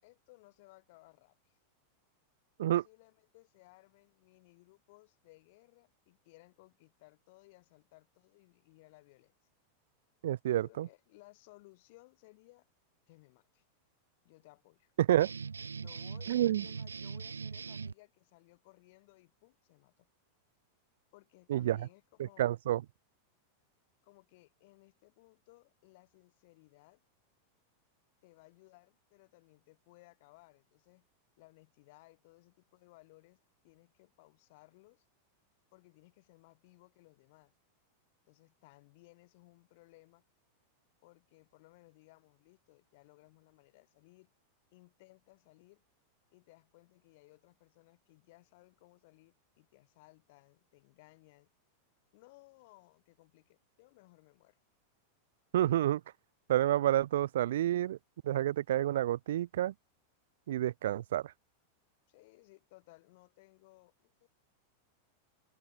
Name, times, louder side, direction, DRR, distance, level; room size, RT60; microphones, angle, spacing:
voice 1, 0.0-1.6 2.7-9.3 10.5-12.7 13.1-13.6 14.2-14.9 15.8-20.1 21.1-22.5 24.0-27.0 28.2-31.0 31.4-35.0 35.7-37.5 38.3-40.2 41.0-44.3 44.7-45.8 46.3-51.5 52.1-54.6 62.1-64.3, left 22 dB, 50° left, 5.9 m, -61 dB
voice 2, 10.2-10.9 15.0-15.3 16.3-16.6 21.5-21.8 22.4-22.8 55.5-56.0 56.5-58.0 58.2-59.7 60.5-61.3, right 12 dB, 60° right, 0.3 m, -29 dB
sound 1, 15.2-17.9, right 5 dB, 75° right, 0.9 m, -41 dB
figure-of-eight pair, 90°, 0 cm